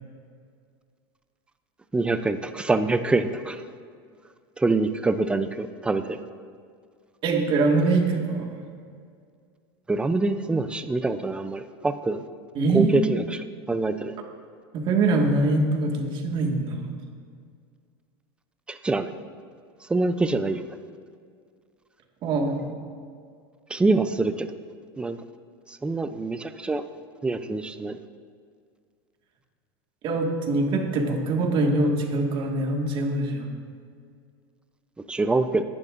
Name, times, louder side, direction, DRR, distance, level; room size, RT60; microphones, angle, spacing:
voice 1, 1.9-3.6 4.6-6.2 9.9-12.2 12.7-13.4 13.7-14.1 18.7-19.1 19.9-20.6 23.7-24.5 25.0-25.2 25.7-26.8 27.2-28.0 35.1-35.6, right 3 dB, 10° right, 9 dB, 0.5 m, -25 dB
voice 2, 7.2-8.6 12.6-13.0 14.7-17.0 22.2-22.8 30.0-33.5, right 2 dB, 40° right, 1 dB, 1.8 m, -23 dB
20.0 x 11.0 x 2.6 m, 2.2 s
supercardioid pair, 135°, 13 cm